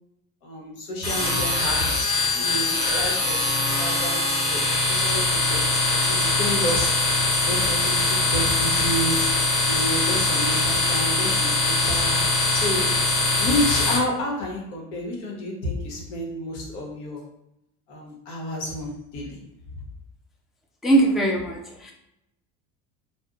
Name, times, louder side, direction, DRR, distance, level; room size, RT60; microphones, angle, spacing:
voice 1, 0.4-7.1 7.5-9.4 9.6-12.2 12.5-13.0 13.4-17.2 17.9-19.4, left 1 dB, 80° left, -1 dB, 1.1 m, -30 dB
sound 1, 1.0-14.0, left 2 dB, 20° left, 1.2 m, -22 dB
voice 2, 20.8-21.9, right 2 dB, ahead, 0 dB, 0.3 m, -21 dB
2.6 x 2.1 x 3.6 m, 0.84 s
supercardioid pair, 105°, 34 cm